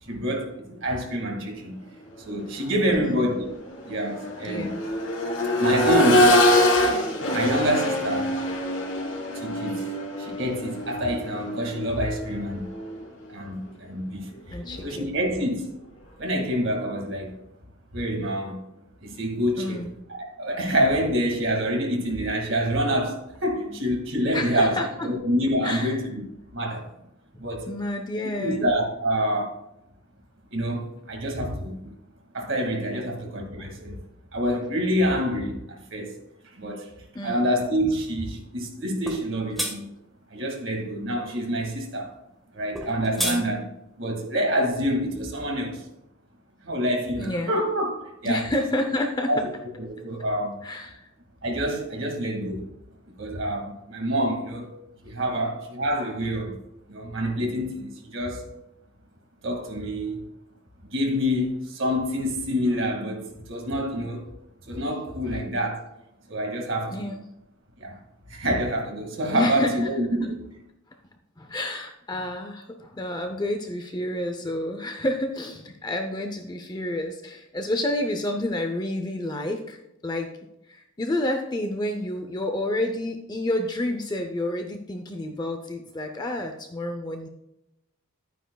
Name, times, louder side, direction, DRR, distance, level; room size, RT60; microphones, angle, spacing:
voice 1, 0.0-3.5 3.8-4.7 5.6-6.5 7.3-8.4 9.3-9.9 10.2-12.7 13.3-15.7 16.2-17.4 17.9-18.6 19.0-26.3 26.5-27.0 27.4-27.7 28.4-29.6 30.5-32.0 32.3-34.0 34.3-39.9 40.3-42.2 42.5-43.7 44.0-45.9 46.6-48.5 49.3-49.5 49.7-50.7 51.4-52.7 53.0-54.8 55.0-56.6 56.9-58.5 59.4-60.3 60.8-64.3 64.6-65.8 66.3-67.1 67.8-68.0 68.3-70.4, equal, 65° right, 2.1 m, -27 dB
Accelerating revving vroom, 2.5-2.7 3.1-13.0 14.7-14.8, left 1 dB, 70° left, 2.7 m, -24 dB
voice 2, 2.9-3.3 4.4-4.8 14.5-15.5 19.6-19.9 23.6-23.8 24.3-24.9 25.6-26.0 27.7-28.7 37.1-37.4 43.2-43.5 47.2-47.5 48.3-49.3 50.6-51.1 55.4-55.5 66.9-67.2 69.3-69.9 70.2-70.3 71.4-80.3 80.7-87.3, left 1 dB, 20° left, 0.6 m, -29 dB
sound 1, 39.1-39.2 39.6-39.7 42.7-43.4, equal, ahead, 1.5 m, -28 dB
12.5 x 9.1 x 2.3 m
head